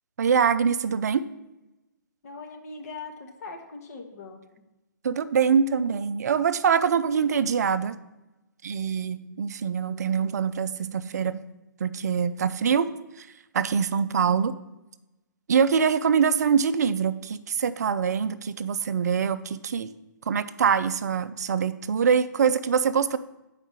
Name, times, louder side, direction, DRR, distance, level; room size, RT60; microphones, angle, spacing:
voice 1, 0.2-1.2 5.0-8.0 8.6-11.4 11.8-12.9 13.2-13.3 13.5-14.5 15.5-19.9 20.3-23.2, right 6 dB, 55° right, 14 dB, 0.4 m, -24 dB
voice 2, 2.2-4.4, left 4 dB, 50° left, 3 dB, 1.2 m, -40 dB
7.2 x 4.8 x 5.0 m, 0.98 s
figure-of-eight pair, 130°, 11 cm